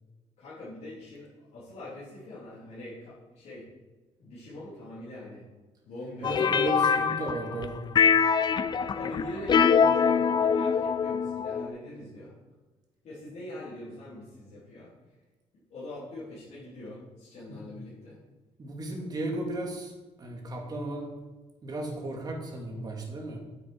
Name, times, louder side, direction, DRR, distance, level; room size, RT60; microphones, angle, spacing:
voice 1, 0.4-3.7 4.2-5.5 5.8-6.7 8.7-12.3 13.0-14.9 15.7-18.2, left 1 dB, 65° left, -10 dB, 3.8 m, -42 dB
sound 1, 6.2-7.7 8.0-11.7, left 6 dB, 35° left, 0.5 m, -24 dB
voice 2, 6.2-7.8 17.5-17.6 18.6-19.9 20.2-21.1 21.6-23.4, right 2 dB, 30° right, 1 dB, 2.2 m, -34 dB
9.5 x 8.1 x 4.6 m, 1.2 s
cardioid pair, 140°, 12 cm